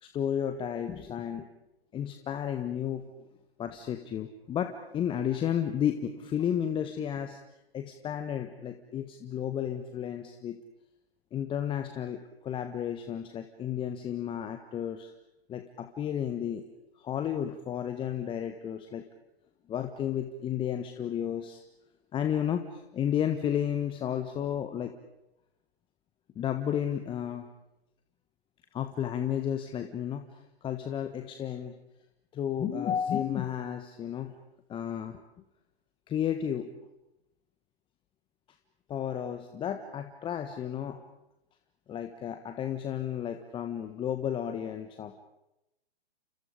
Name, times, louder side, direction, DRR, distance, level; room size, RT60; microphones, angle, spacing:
voice 1, 0.0-1.5 1.9-3.3 3.6-7.4 7.7-10.6 11.3-15.1 15.5-16.6 17.0-19.0 19.7-21.6 22.1-24.9 26.3-27.5 28.7-31.8 32.3-34.3 34.7-35.2 36.1-36.7 38.9-41.0 41.9-45.1, left 9 dB, 15° left, 7 dB, 1.4 m, -32 dB
30.0 x 29.5 x 5.1 m, 0.89 s
figure-of-eight pair, 120°, 31 cm